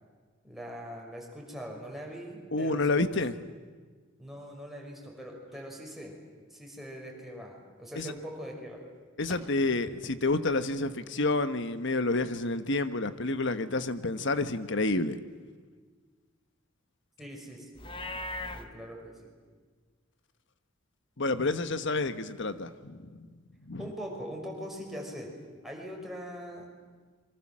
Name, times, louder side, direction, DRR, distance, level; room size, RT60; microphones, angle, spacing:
voice 1, 0.4-2.9 4.2-6.2 6.5-8.8 17.2-17.7 18.5-19.3 23.8-25.3 25.6-26.7, equal, ahead, -1 dB, 5.8 m, -42 dB
voice 2, 2.5-3.3 8.0-8.1 9.2-15.2 21.2-23.3 23.7-23.8, left 2 dB, 60° left, 11 dB, 1.3 m, -29 dB
Livestock farm animals working animals, 17.8-18.7, left 2 dB, 25° left, 1.6 m, -37 dB
28.0 x 24.5 x 7.6 m, 1.5 s
head